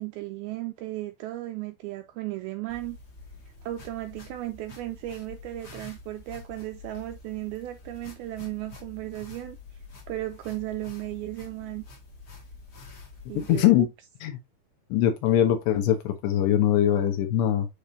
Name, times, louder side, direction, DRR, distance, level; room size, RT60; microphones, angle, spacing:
voice 1, 0.0-3.0 3.6-9.6 10.1-11.8 13.3-13.9, right 16 dB, 90° right, 2.2 m, -35 dB
sound 1, 2.7-13.6, left 3 dB, 60° left, 1.0 m, -47 dB
voice 2, 13.4-13.9 14.2-14.4 14.9-17.7, left 11 dB, 80° left, 3.3 m, -22 dB
10.0 x 3.7 x 2.7 m
omnidirectional pair, 5.0 m